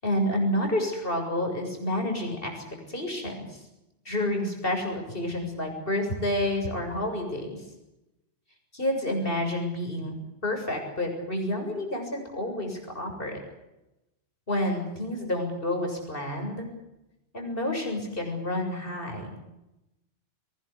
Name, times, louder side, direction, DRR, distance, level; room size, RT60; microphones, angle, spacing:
voice 1, 0.0-3.6 4.1-7.6 8.7-10.2 10.4-13.4 14.5-16.7 17.3-19.4, left 1 dB, 50° left, 3 dB, 7.5 m, -29 dB
23.0 x 20.0 x 8.6 m, 0.93 s
omnidirectional pair, 1.2 m